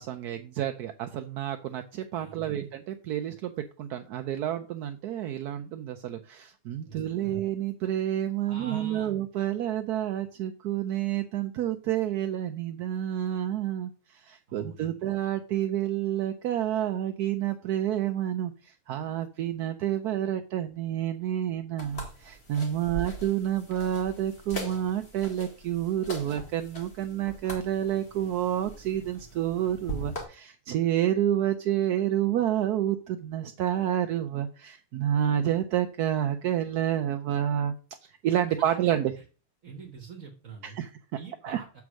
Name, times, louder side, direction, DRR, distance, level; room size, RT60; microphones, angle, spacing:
voice 1, 0.0-37.7 38.0-39.1 40.6-40.9 41.4-41.6, right 11 dB, 75° right, 7 dB, 1.1 m, -29 dB
voice 2, 2.1-2.7 6.8-7.4 8.5-9.1 14.5-15.0 22.8-23.2 38.6-39.2 39.6-41.8, right 4 dB, 55° right, 4 dB, 1.5 m, -46 dB
sound 1, 21.8-30.2, right 1 dB, 40° left, 2.3 m, -41 dB
7.2 x 4.7 x 6.2 m, 0.35 s
omnidirectional pair, 1.8 m